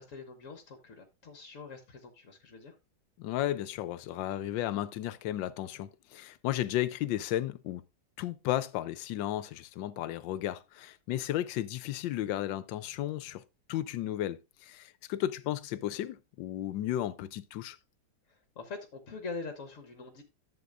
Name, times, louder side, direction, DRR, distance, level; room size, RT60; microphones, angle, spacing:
voice 1, 0.0-2.7 18.3-20.2, left 4 dB, 50° left, 1.2 m, -44 dB
voice 2, 3.2-7.8 8.2-13.4 13.7-17.8, left 13 dB, 75° left, 1.3 m, -34 dB
11.5 x 7.6 x 2.5 m
omnidirectional pair, 2.1 m